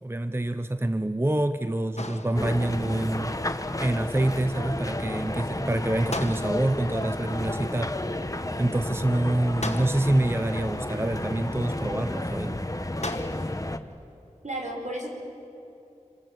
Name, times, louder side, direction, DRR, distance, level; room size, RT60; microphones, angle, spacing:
voice 1, 0.0-7.9 8.3-12.6, right 1 dB, 20° right, 11 dB, 0.7 m, -27 dB
sound 1, 2.0-2.8 6.1-6.9 9.6-10.4 13.0-13.7, left 2 dB, 60° left, 1.6 m, -37 dB
sound 2, 2.4-13.8, left 1 dB, 25° left, 1.2 m, -32 dB
voice 2, 14.4-15.1, right 1 dB, 70° right, 0 dB, 5.4 m, -34 dB
27.5 x 25.0 x 7.6 m, 2.7 s
wide cardioid pair, 45°, 13 cm